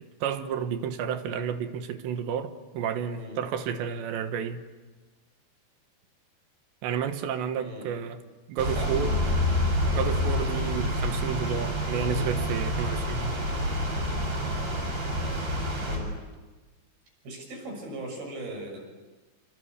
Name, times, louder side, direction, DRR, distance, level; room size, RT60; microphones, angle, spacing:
voice 1, 0.0-4.6 6.8-8.2 8.5-9.1 9.9-13.4, right 8 dB, 80° right, 3.5 m, -31 dB
voice 2, 7.6-7.9 8.8-9.1 12.0-12.3 15.8-16.1 17.2-18.9, right 1 dB, 60° right, 8.4 m, -39 dB
sound 1, 8.6-16.0, left 1 dB, 40° right, 7.9 m, -28 dB
27.0 x 27.0 x 8.2 m
omnidirectional pair, 5.1 m